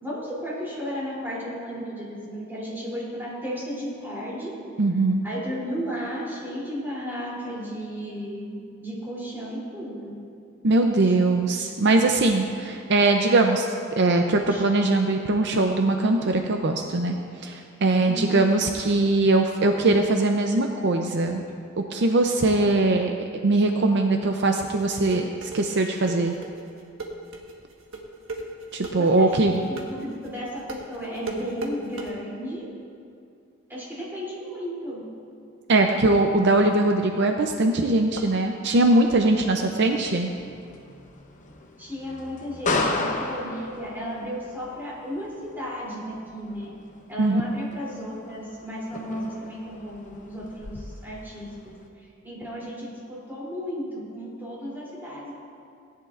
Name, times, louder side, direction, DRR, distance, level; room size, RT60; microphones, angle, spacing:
voice 1, 0.0-4.5 5.2-10.1 11.0-11.1 14.5-14.6 18.0-18.5 28.9-29.3 29.7-32.6 33.7-35.0 41.8-46.7 47.1-51.7 52.2-55.3, equal, 10° right, -7 dB, 3.0 m, -34 dB
voice 2, 4.8-5.2 10.6-17.2 17.4-21.4 21.9-26.3 28.7-29.6 35.7-40.3 47.2-47.4, right 2 dB, 60° right, 4 dB, 0.6 m, -21 dB
sound 1, 24.6-32.1, right 2 dB, 75° right, 1.4 m, -36 dB
sound 2, 39.0-51.9, left 2 dB, 40° left, 0.8 m, -35 dB
18.0 x 10.5 x 2.5 m, 2.4 s
head